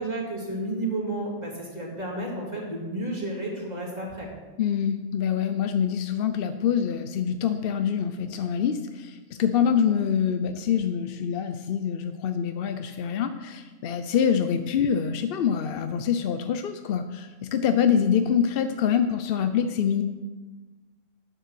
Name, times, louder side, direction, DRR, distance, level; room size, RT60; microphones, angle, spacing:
voice 1, 0.0-4.3, right 2 dB, 30° right, -2 dB, 2.5 m, -31 dB
voice 2, 4.6-20.0, left 8 dB, 60° left, 9 dB, 0.7 m, -25 dB
9.2 x 7.4 x 6.8 m, 1.3 s
omnidirectional pair, 1.4 m